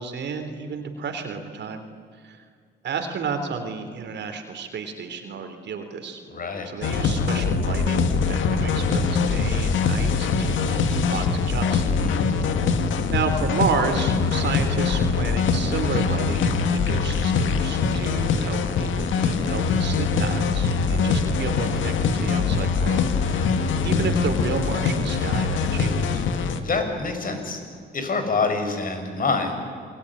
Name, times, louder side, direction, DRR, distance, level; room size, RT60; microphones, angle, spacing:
voice 1, 0.0-1.8 2.2-2.4 2.8-6.2 6.6-11.8 12.2-12.6 13.1-23.5 23.8-26.3, right 5 dB, 60° right, 6 dB, 3.3 m, -31 dB
voice 2, 6.3-6.7 11.9-12.2 26.6-27.6 27.9-29.5, left 4 dB, 45° left, 6 dB, 6.1 m, -26 dB
sound 1, 6.8-26.6, left 5 dB, 75° left, 2.1 m, -23 dB
27.5 x 21.5 x 9.9 m, 2.1 s
cardioid pair, 90°, 20 cm